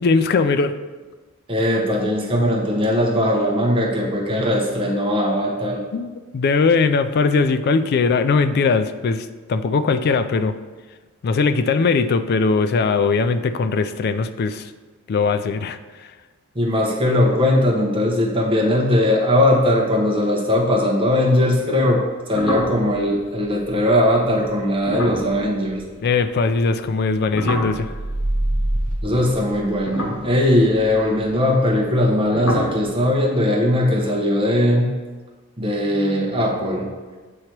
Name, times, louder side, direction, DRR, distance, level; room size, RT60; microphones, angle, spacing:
voice 1, 0.0-0.8 5.9-10.5 11.2-14.7 15.1-15.8 26.0-27.9, left 4 dB, 50° left, 10 dB, 0.3 m, -20 dB
voice 2, 1.5-5.8 16.5-25.8 29.0-34.9 35.6-36.9, left 1 dB, 25° right, -1 dB, 0.9 m, -19 dB
sound 1, 22.3-26.7 26.9-29.1 29.7-32.1 32.3-32.8, equal, 75° left, 1.4 m, -30 dB
sound 2, 27.6-30.2, right 1 dB, 80° right, 1.1 m, -25 dB
7.9 x 2.9 x 4.5 m, 1.3 s
head